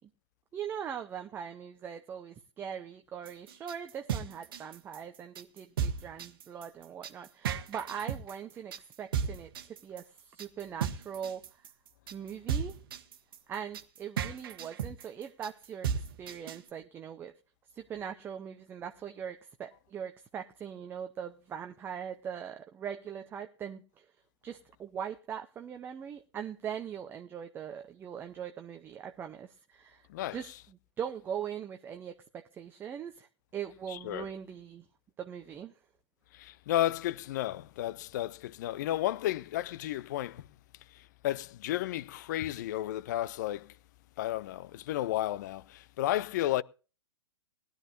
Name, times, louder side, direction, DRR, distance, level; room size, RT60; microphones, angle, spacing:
voice 1, 0.5-11.6 12.1-12.8 13.5-17.3 17.7-24.1 24.4-33.3 33.5-34.8 35.2-35.7, right 8 dB, 15° right, 0.7 m, -41 dB
sound 1, 3.3-16.7, right 7 dB, 50° right, 1.3 m, -35 dB
voice 2, 33.9-34.3 36.4-40.4 41.2-43.7 44.2-46.6, left 14 dB, 40° left, 0.5 m, -32 dB
20.0 x 12.0 x 2.5 m
figure-of-eight pair, 115°, 15 cm